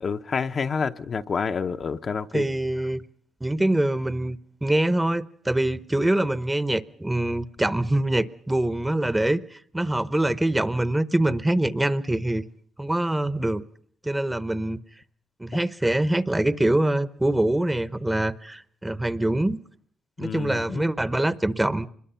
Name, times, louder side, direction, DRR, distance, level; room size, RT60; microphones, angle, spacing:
voice 1, 0.0-2.5 15.5-15.6 20.2-20.9, left 5 dB, 45° left, 0.8 m, -28 dB
voice 2, 2.3-3.0 3.4-12.4 12.8-13.6 14.0-14.8 15.4-19.6 20.2-21.9, right 1 dB, 10° right, 0.9 m, -24 dB
25.5 x 21.5 x 5.7 m
cardioid pair, 90°, 0 cm